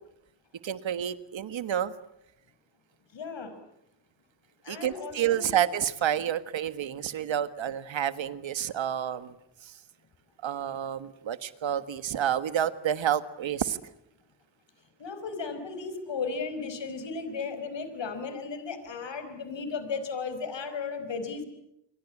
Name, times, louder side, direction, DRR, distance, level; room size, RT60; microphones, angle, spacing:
voice 1, 0.6-1.9 4.7-9.3 9.6-9.7 10.4-13.8, right 10 dB, 75° right, 13 dB, 1.6 m, -29 dB
voice 2, 3.1-3.5 4.6-5.5 15.0-21.4, left 5 dB, 70° left, 10 dB, 5.2 m, -35 dB
28.0 x 24.5 x 8.5 m, 0.78 s
cardioid pair, 60°, 46 cm